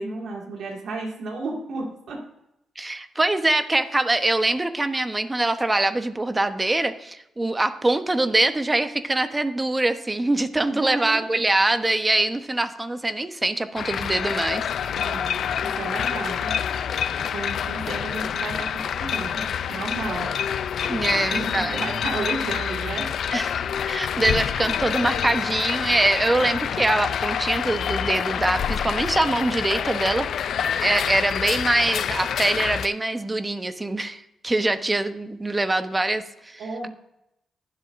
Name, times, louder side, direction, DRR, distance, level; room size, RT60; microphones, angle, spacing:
voice 1, 0.0-2.2 10.7-11.2 14.9-16.5 17.3-20.3 21.3-23.1 36.6-36.9, right 3 dB, 75° right, -1 dB, 2.1 m, -32 dB
voice 2, 2.8-14.6 20.9-21.8 23.3-23.6 23.9-30.3 30.8-36.9, right 2 dB, 20° right, 9 dB, 1.0 m, -23 dB
sound 1, 13.8-32.9, left 8 dB, 70° left, 0.4 m, -27 dB
20.5 x 7.9 x 2.6 m, 0.82 s
cardioid pair, 70°, 0 cm